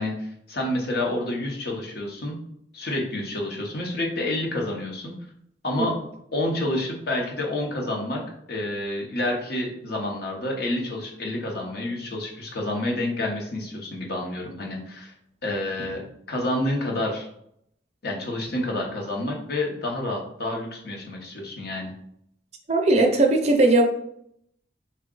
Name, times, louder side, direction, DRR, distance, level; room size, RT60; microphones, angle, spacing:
voice 1, 0.0-2.4 2.7-5.1 5.6-6.0 6.3-8.2 8.5-15.1 15.4-16.0 16.3-17.3 18.0-21.9, left 1 dB, 60° left, 0 dB, 0.8 m, -29 dB
voice 2, 22.7-23.8, right 2 dB, 40° right, 3 dB, 0.5 m, -18 dB
3.6 x 2.2 x 3.7 m, 0.72 s
head